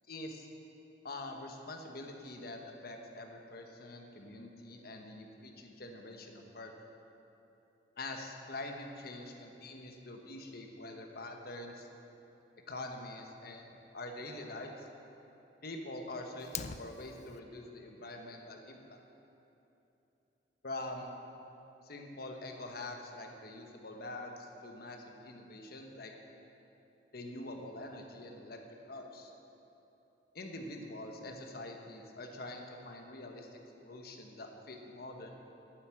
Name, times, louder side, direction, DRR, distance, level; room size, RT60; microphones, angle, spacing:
voice 1, 0.1-0.5 1.0-6.7 8.0-11.9 12.7-14.7 15.6-19.0 20.6-21.1 21.8-26.2 27.1-28.6 28.9-29.3 30.3-35.3, left 2 dB, 55° left, 3 dB, 1.1 m, -45 dB
Fire, 16.4-17.4, left 7 dB, 40° left, 0.3 m, -42 dB
9.2 x 8.2 x 7.6 m, 2.9 s
head